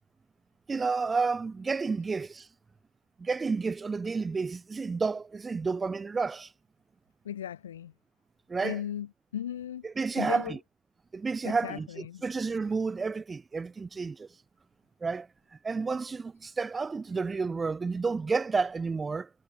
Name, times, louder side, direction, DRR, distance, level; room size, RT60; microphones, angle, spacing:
voice 1, 0.7-2.5 3.2-6.5 8.5-8.8 9.8-10.6 11.1-14.3 15.0-15.3 15.6-19.3, right 4 dB, 10° right, 2.7 m, -30 dB
voice 2, 7.2-7.9 8.6-9.9 10.2-10.6 11.4-12.2, left 10 dB, 65° left, 7.0 m, -37 dB
figure-of-eight pair, 110°, 0 cm